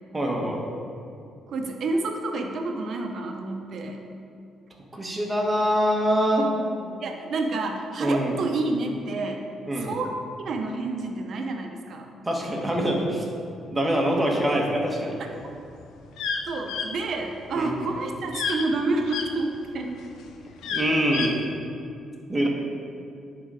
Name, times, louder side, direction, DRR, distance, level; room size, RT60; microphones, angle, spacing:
voice 1, 0.1-0.6 4.9-6.5 6.8-6.9 8.0-8.4 9.7-9.9 12.2-13.2 13.7-15.2 17.5-17.7 20.7-21.4 22.3-22.5, equal, 15° right, -1 dB, 1.5 m, -24 dB
voice 2, 1.5-4.0 7.0-9.4 9.8-10.1 10.4-12.1 16.5-19.9, right 2 dB, 60° right, 3 dB, 0.9 m, -29 dB
sound 1, 15.4-19.3 19.8-21.4, left 5 dB, 85° left, 0.6 m, -30 dB
9.8 x 3.9 x 4.8 m, 2.5 s
cardioid pair, 90°, 0 cm